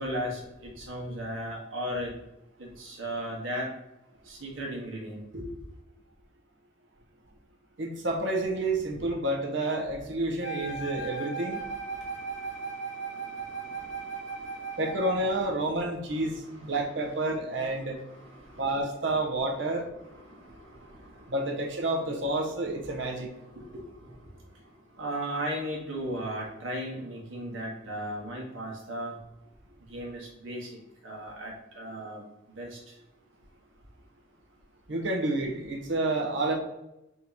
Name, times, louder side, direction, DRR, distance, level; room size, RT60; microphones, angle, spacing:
voice 1, 0.0-2.1 2.6-3.7 4.2-5.5 11.5-14.8 16.0-18.8 19.9-21.3 23.0-23.1 23.4-24.3 25.0-29.2 29.9-32.2 32.5-32.8, equal, 85° right, -2 dB, 1.4 m, -38 dB
voice 2, 7.8-11.6 14.8-18.0 18.6-19.8 21.3-23.3 34.9-36.5, right 2 dB, 65° right, 1 dB, 0.9 m, -29 dB
Wind instrument woodwind instrument, 10.4-15.5, right 4 dB, 65° left, 0.6 m, -37 dB
3.8 x 2.9 x 4.0 m, 0.92 s
head